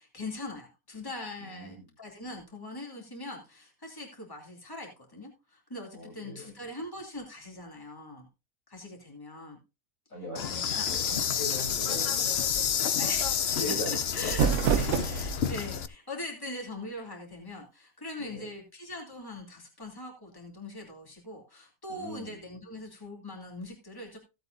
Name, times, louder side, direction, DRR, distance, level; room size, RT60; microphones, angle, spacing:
voice 1, 0.0-8.3 8.7-9.6 10.4-10.9 13.0-24.2, left 2 dB, 15° left, 0 dB, 2.9 m, -41 dB
voice 2, 1.4-1.9 5.9-6.5 10.1-12.8 13.6-14.0 14.2-14.7 18.2-18.5 21.9-22.4, left 1 dB, 75° left, -3 dB, 6.5 m, -41 dB
Insect, 10.4-15.9, left 8 dB, 55° left, 0.9 m, -29 dB
sound 1, 14.0-15.6, right 7 dB, 85° right, 1.1 m, -27 dB
16.5 x 8.1 x 2.6 m, 0.27 s
omnidirectional pair, 1.4 m